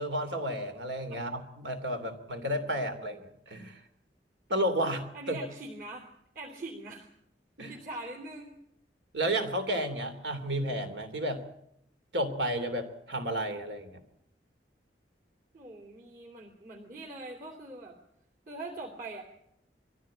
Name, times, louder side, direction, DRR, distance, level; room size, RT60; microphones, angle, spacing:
voice 1, 0.0-3.8 4.5-5.5 7.6-7.7 9.1-11.4 12.1-14.0, right 1 dB, 85° right, 8 dB, 3.1 m, -32 dB
voice 2, 2.6-3.1 5.1-6.1 6.3-7.1 7.7-8.5 15.5-18.0 18.5-19.2, right 2 dB, 50° right, -1 dB, 3.2 m, -43 dB
23.0 x 15.5 x 8.9 m, 0.75 s
head